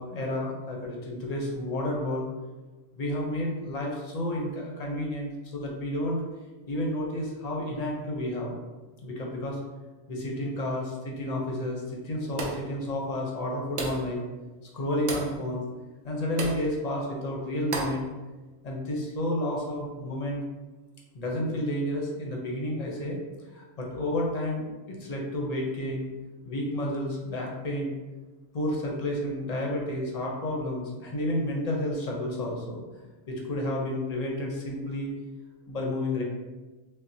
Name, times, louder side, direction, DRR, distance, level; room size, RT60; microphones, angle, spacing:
voice 1, 0.0-2.3 2.9-6.2 6.7-8.5 9.0-9.6 10.1-14.3 14.7-15.6 16.0-18.0 18.6-20.4 21.1-23.2 23.5-26.1 26.4-27.9 28.5-32.8 33.3-35.1 35.7-36.2, left 1 dB, 40° left, -2 dB, 0.6 m, -31 dB
sound 1, 12.4-12.7 13.8-14.1 15.1-15.4 16.4-16.7 17.7-18.0, right 3 dB, 65° right, 0.9 m, -32 dB
5.9 x 2.1 x 2.7 m, 1.2 s
omnidirectional pair, 1.5 m